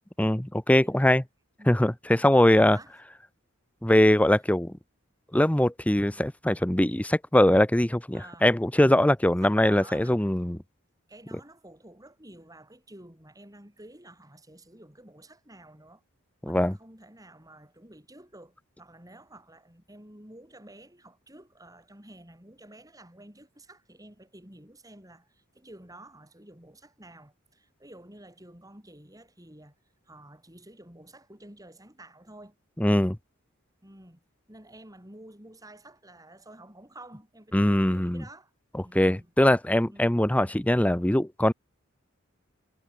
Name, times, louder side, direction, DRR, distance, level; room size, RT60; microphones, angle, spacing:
voice 1, 0.2-1.2 1.7-2.8 3.8-4.7 5.3-10.6 16.5-16.7 32.8-33.2 37.5-38.2 38.9-41.5, left 1 dB, 5° left, 0.7 m, -22 dB
voice 2, 0.8-1.2 1.6-1.9 2.7-3.0 8.1-8.6 9.4-10.2 11.1-16.0 16.4-29.7 30.0-32.6 33.8-34.2 34.5-38.5 38.8-39.3 39.9-40.2, right 1 dB, 15° right, 7.3 m, -50 dB
head